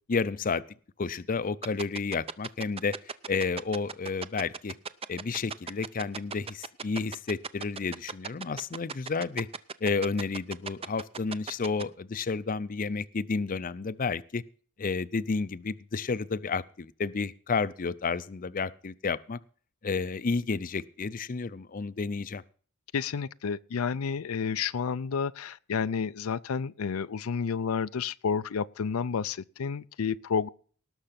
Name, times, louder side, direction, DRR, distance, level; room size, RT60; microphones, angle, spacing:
voice 1, 0.1-0.6 1.0-3.0 3.3-4.8 5.1-9.5 9.8-14.4 14.8-19.4 19.8-22.4, left 4 dB, 40° left, 0.5 m, -31 dB
sound 1, 1.6-11.8, right 5 dB, 30° right, 0.5 m, -36 dB
voice 2, 22.9-30.5, left 6 dB, 85° left, 0.5 m, -30 dB
19.0 x 6.3 x 5.8 m
head